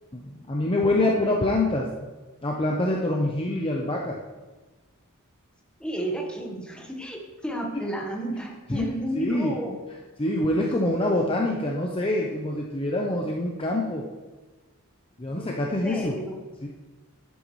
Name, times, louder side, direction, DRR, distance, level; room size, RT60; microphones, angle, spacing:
voice 1, 0.1-1.9 2.4-4.2 8.7-8.9 9.2-9.6 10.2-14.1 15.2-16.2 16.6-16.7, left 1 dB, 25° left, -1 dB, 0.7 m, -25 dB
voice 2, 0.8-1.4 5.8-9.8 15.3-16.4, equal, 5° left, 0 dB, 1.3 m, -33 dB
11.0 x 9.4 x 3.2 m, 1.2 s
head